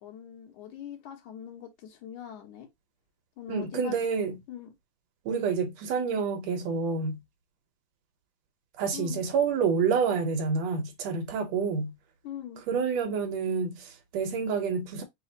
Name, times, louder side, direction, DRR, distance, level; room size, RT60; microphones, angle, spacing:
voice 1, 0.0-2.7 3.4-4.0 4.5-4.7 8.9-9.2 12.2-12.6, left 10 dB, 85° left, 2.6 m, -42 dB
voice 2, 3.5-4.4 5.3-7.2 8.8-11.9 12.7-15.0, right 5 dB, 70° right, 2.0 m, -28 dB
5.5 x 2.1 x 3.9 m
omnidirectional pair, 3.3 m